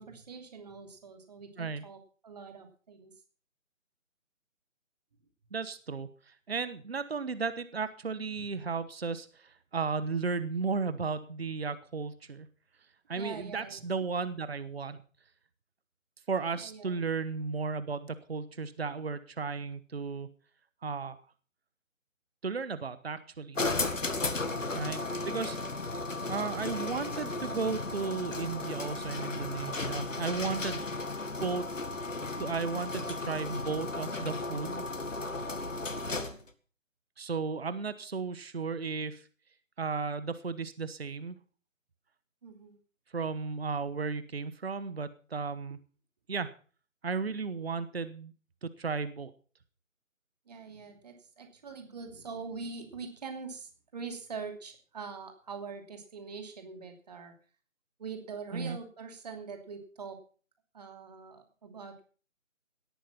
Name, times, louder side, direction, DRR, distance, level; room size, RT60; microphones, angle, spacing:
voice 1, 0.0-3.1 8.3-8.5 13.1-13.8 16.6-17.0 24.4-25.9 42.4-42.8 50.5-57.3 58.0-60.2 60.7-62.0, right 5 dB, 30° right, 5 dB, 2.8 m, -44 dB
voice 2, 5.5-12.5 13.1-15.0 16.3-20.3 20.8-21.2 22.4-23.6 24.7-25.6 26.3-30.8 31.4-31.7 32.4-34.8 37.2-39.2 39.8-41.4 43.1-45.8 46.3-46.5 47.0-48.3 48.6-49.3 58.5-58.8, right 4 dB, 50° right, 14 dB, 1.2 m, -34 dB
sound 1, 23.6-36.5, left 3 dB, 70° left, 2.0 m, -35 dB
18.0 x 9.1 x 5.7 m, 0.40 s
figure-of-eight pair, 155°, 40 cm